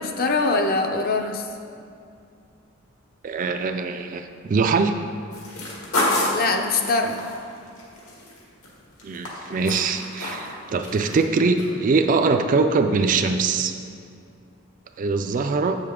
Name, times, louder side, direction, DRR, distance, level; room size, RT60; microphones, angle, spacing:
voice 1, 0.0-1.5 6.3-7.2, left 3 dB, 45° left, 4 dB, 0.6 m, -23 dB
voice 2, 3.2-4.9 9.0-13.7 15.0-15.8, right 4 dB, 40° right, 7 dB, 0.3 m, -22 dB
sound 1, 5.3-8.7 9.0-10.5 10.8-11.2 11.6-11.7, left 1 dB, 80° left, 1.9 m, -28 dB
7.7 x 6.6 x 3.7 m, 2.4 s
head